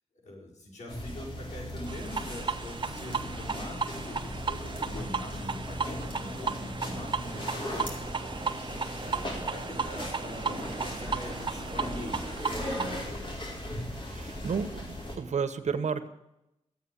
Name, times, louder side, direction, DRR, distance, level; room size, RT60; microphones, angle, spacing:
voice 1, 0.2-7.9 9.0-12.3 12.5-13.4, left 1 dB, 90° left, -3 dB, 5.3 m, -43 dB
sound 1, 0.9-15.2, left 1 dB, 45° left, 4.4 m, -38 dB
sound 2, 1.9-13.1, right 5 dB, 40° right, 1.1 m, -35 dB
voice 2, 14.0-16.1, right 6 dB, 80° right, 9 dB, 1.2 m, -32 dB
14.5 x 8.8 x 9.9 m, 0.85 s
wide cardioid pair, 110°, 12 cm